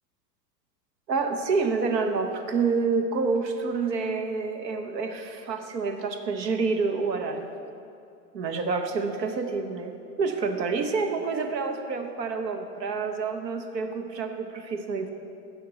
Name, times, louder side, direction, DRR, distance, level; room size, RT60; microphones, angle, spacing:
voice 1, 1.1-7.5 8.3-15.1, right 4 dB, 85° right, 6 dB, 1.0 m, -28 dB
6.6 x 6.4 x 6.9 m, 2.5 s
hypercardioid pair, 110°, 49 cm